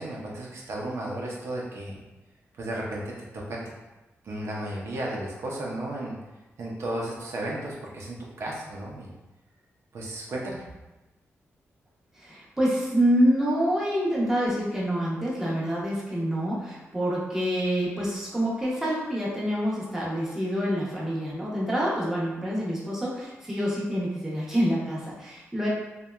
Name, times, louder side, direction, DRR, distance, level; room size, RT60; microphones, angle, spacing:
voice 1, 0.0-2.0 2.6-3.6 4.2-6.2 6.6-9.1 9.9-10.7, right 1 dB, 65° right, -3 dB, 0.4 m, -34 dB
voice 2, 12.1-25.7, equal, 10° right, -6 dB, 0.6 m, -27 dB
2.7 x 2.1 x 2.2 m, 1.1 s
wide cardioid pair, 125°, 5 cm